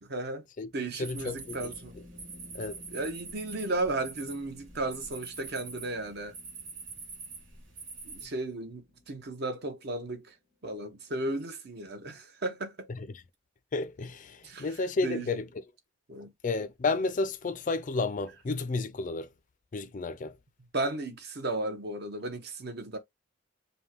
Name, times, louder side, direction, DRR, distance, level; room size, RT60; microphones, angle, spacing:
voice 1, 0.0-0.4 0.7-2.0 2.9-6.3 8.0-10.3 10.6-12.9 14.4-14.7 15.0-15.3 16.1-16.3 20.7-23.0, right 2 dB, 55° right, 0.9 m, -34 dB
voice 2, 0.6-1.7 2.5-2.8 12.9-13.2 13.7-15.5 16.4-19.3 19.7-20.3, left 3 dB, 40° left, 0.4 m, -32 dB
sound 1, 1.0-8.3, right 4 dB, 75° right, 1.8 m, -45 dB
sound 2, 1.1-11.3, left 1 dB, 35° right, 1.8 m, -55 dB
5.3 x 2.2 x 3.0 m
head